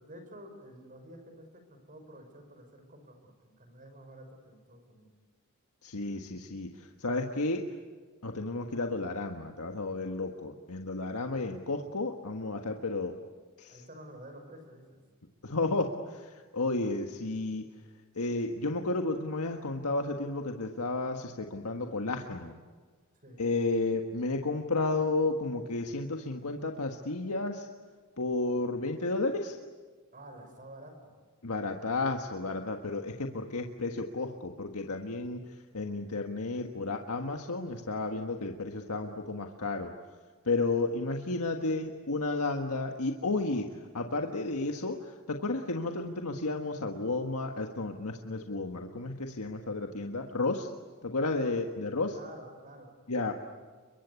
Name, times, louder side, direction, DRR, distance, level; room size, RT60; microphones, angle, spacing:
voice 1, 0.0-5.1 13.7-15.0 23.2-23.4 30.1-31.2 51.3-51.5 52.1-52.9, right 1 dB, 40° right, 7 dB, 5.5 m, -50 dB
voice 2, 5.8-7.6 8.2-13.1 13.6-13.8 15.4-17.6 18.1-22.6 23.4-27.7 28.2-29.6 31.4-35.4 35.7-39.9 40.4-50.7 51.0-52.2 53.1-53.3, left 3 dB, 85° left, 3 dB, 1.6 m, -32 dB
29.5 x 24.0 x 8.3 m, 1.5 s
head